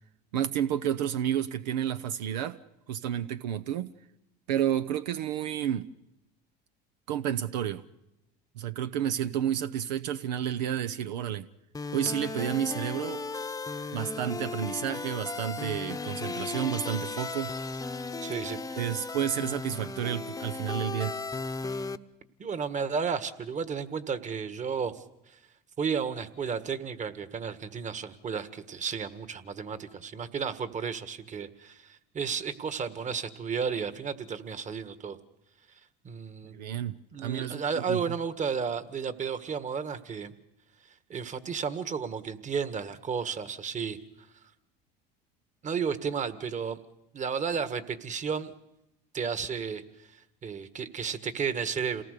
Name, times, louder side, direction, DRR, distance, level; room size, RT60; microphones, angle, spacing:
voice 1, 0.3-2.6 2.9-3.9 4.5-5.9 7.1-7.8 8.6-11.5 11.9-13.2 13.9-17.5 18.8-21.1 36.5-38.0, right 10 dB, 85° right, 11 dB, 0.8 m, -30 dB
sound 1, 11.7-22.0, left 4 dB, 15° left, 0.9 m, -36 dB
voice 2, 18.2-18.8 22.4-25.0 25.8-35.2 36.0-36.6 37.1-40.3 41.1-44.0 45.6-46.8 47.1-48.5 49.1-49.8 50.1-52.0, right 6 dB, 35° right, 10 dB, 1.8 m, -33 dB
28.0 x 18.5 x 6.8 m, 0.89 s
hypercardioid pair, 80°, 21 cm